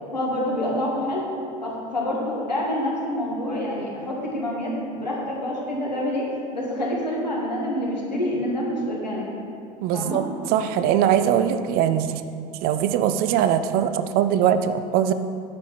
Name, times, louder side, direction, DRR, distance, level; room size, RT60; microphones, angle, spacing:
voice 1, 0.1-1.2 1.6-6.3 6.5-9.3 9.9-10.2, left 1 dB, 85° left, -3 dB, 1.8 m, -27 dB
voice 2, 9.8-12.1 12.6-15.1, right 9 dB, 45° right, 10 dB, 0.6 m, -21 dB
9.6 x 6.0 x 5.9 m, 2.4 s
figure-of-eight pair, 70°, 21 cm